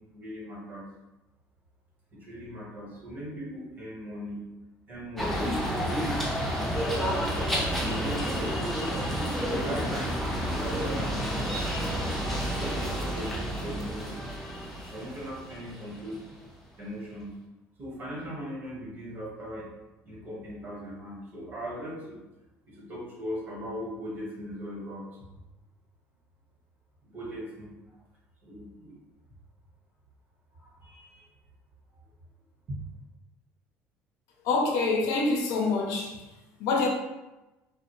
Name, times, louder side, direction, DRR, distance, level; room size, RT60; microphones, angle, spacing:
voice 1, 0.1-0.9 2.1-4.4 4.9-6.1 7.5-8.9 9.5-11.6 12.6-14.2 14.9-16.2 16.8-17.3 17.8-19.7 20.0-22.2 22.7-25.3 27.0-27.7 28.4-28.9 30.6-31.3 32.7-32.8, equal, 35° right, 1.0 m, -39 dB
sound 1, 5.2-16.4, equal, 5° left, 0.6 m, -30 dB
voice 2, 34.4-36.2 36.6-36.9, left 3 dB, 80° left, 0.6 m, -26 dB
2.4 x 2.0 x 2.9 m
cardioid pair, 105°, 6 cm